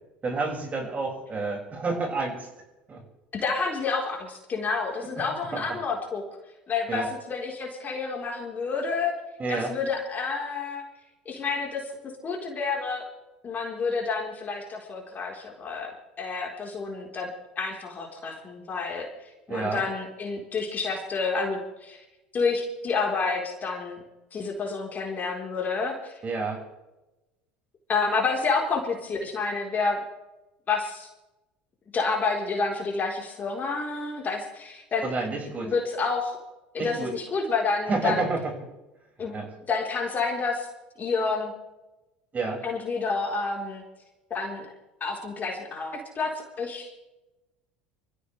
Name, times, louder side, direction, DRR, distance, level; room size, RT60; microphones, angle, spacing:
voice 1, 0.2-2.5 2.9-3.0 5.2-5.3 5.5-5.6 6.9-7.1 9.4-9.7 19.5-19.8 26.2-26.6 35.0-35.7 36.8-37.1 37.9-38.5 39.3-39.5 42.3-42.6, right 3 dB, 30° right, 0 dB, 6.3 m, -29 dB
voice 2, 3.3-6.2 6.7-9.1 9.5-10.8 11.3-11.9 12.2-13.1 13.4-17.3 17.6-22.0 22.3-24.0 24.3-26.2 27.9-30.0 30.7-31.1 31.9-35.1 35.6-36.4 36.7-38.3 39.2-40.7 41.0-41.5 42.6-43.8 44.3-44.7 45.0-47.0, left 4 dB, 35° left, 0 dB, 4.3 m, -29 dB
26.5 x 15.0 x 3.4 m, 1.0 s
hypercardioid pair, 70°, 5 cm